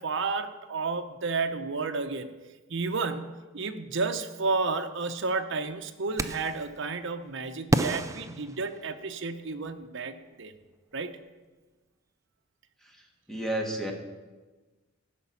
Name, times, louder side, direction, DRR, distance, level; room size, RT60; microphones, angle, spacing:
voice 1, 0.0-2.3 2.7-10.5 10.9-11.2, right 4 dB, 65° right, 8 dB, 0.8 m, -31 dB
sound 1, 6.2-6.6 7.7-9.2, right 2 dB, 15° right, 0.4 m, -30 dB
voice 2, 13.3-13.9, right 1 dB, ahead, 1 dB, 1.5 m, -30 dB
15.0 x 5.9 x 7.1 m, 1.3 s
head